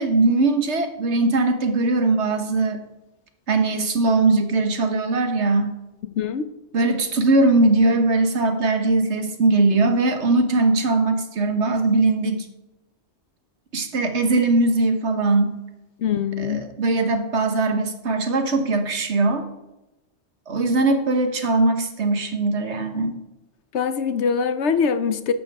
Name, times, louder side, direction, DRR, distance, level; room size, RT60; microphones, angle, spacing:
voice 1, 0.0-2.8 3.5-5.8 6.7-12.5 13.7-15.6 16.4-19.5 20.5-23.1, right 2 dB, 75° right, 1.5 m, -20 dB
voice 2, 6.2-6.5 16.0-16.6 23.7-25.3, left 6 dB, 75° left, 1.1 m, -23 dB
13.0 x 11.0 x 3.6 m
omnidirectional pair, 1.2 m